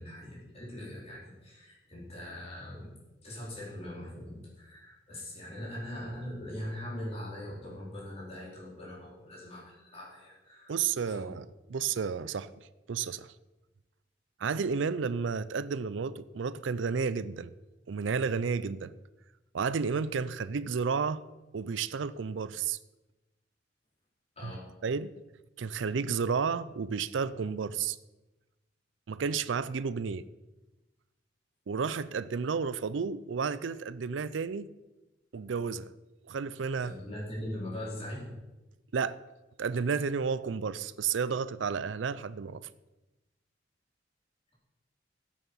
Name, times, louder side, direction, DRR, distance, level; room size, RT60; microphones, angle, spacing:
voice 1, 0.0-2.9 3.2-10.8 11.0-11.3 24.4-24.6 36.8-38.3, left 1 dB, 35° left, 4.6 m, -41 dB
voice 2, 10.7-13.3 14.4-17.5 17.9-18.9 19.5-21.2 21.5-22.8 24.4-24.5 24.8-25.1 25.6-28.0 29.1-30.2 31.7-34.7 35.3-35.9 36.3-36.9 38.9-39.2 39.6-42.7, right 5 dB, 90° right, 0.5 m, -32 dB
13.0 x 8.5 x 5.6 m
head